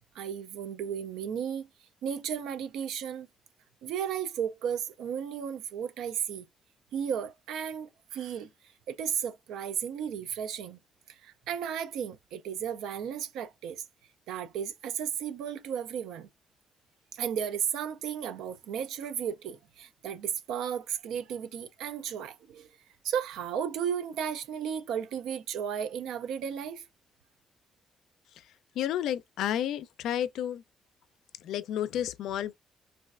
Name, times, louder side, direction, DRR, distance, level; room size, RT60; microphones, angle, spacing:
voice 1, 0.2-1.7 2.0-3.3 3.8-6.5 6.9-8.5 8.9-10.8 11.1-13.8 14.3-16.3 17.1-22.7 23.0-26.8, right 8 dB, 85° right, 0.3 m, -34 dB
voice 2, 28.8-30.6 31.4-32.5, left 11 dB, 85° left, 0.3 m, -31 dB
3.1 x 2.4 x 2.4 m
cardioid pair, 90°, 0 cm